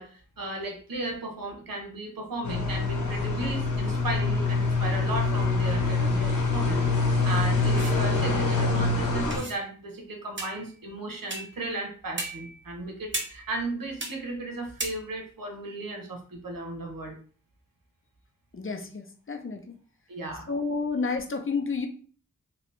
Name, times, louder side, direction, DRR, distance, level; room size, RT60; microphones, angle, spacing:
voice 1, 0.0-6.9 7.2-17.2 20.1-20.5, right 2 dB, 90° right, 2 dB, 0.9 m, -35 dB
sound 1, 2.4-9.4, left 3 dB, 65° left, 1.0 m, -25 dB
sound 2, 7.8-8.0 9.3-9.6 10.4-10.8 11.3-11.6 12.2-12.7 13.1-13.6 14.0-14.2 14.8-14.9, right 2 dB, 35° right, 0.7 m, -35 dB
voice 2, 18.5-19.7 20.5-21.9, left 4 dB, 40° left, 5 dB, 0.6 m, -30 dB
3.0 x 2.8 x 3.2 m, 0.42 s
wide cardioid pair, 70°, 33 cm